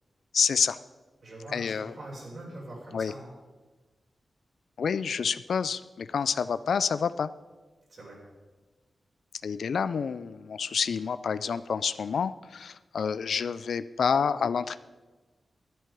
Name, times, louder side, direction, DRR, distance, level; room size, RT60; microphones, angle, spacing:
voice 1, 0.3-0.8 1.5-1.9 2.9-3.1 4.8-7.3 9.4-14.8, left 6 dB, 85° left, 15 dB, 0.3 m, -28 dB
voice 2, 1.2-3.3 7.9-8.2, right 1 dB, 55° right, -5 dB, 4.3 m, -43 dB
12.0 x 10.5 x 4.7 m, 1.3 s
wide cardioid pair, 95°, 0 cm